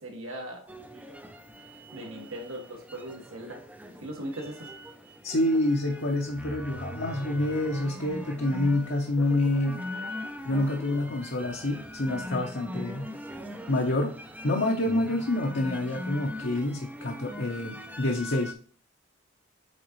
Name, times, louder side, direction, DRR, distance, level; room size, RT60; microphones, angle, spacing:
voice 1, 0.0-0.7 1.9-3.6 4.0-4.7, right 1 dB, 80° right, 1 dB, 2.0 m, -39 dB
sound 1, 0.7-18.5, left 1 dB, 10° right, 0.6 m, -41 dB
voice 2, 5.2-9.8 10.4-13.1 13.7-14.1 14.4-18.5, left 1 dB, 60° left, 0 dB, 1.0 m, -27 dB
8.6 x 3.9 x 3.1 m, 0.43 s
head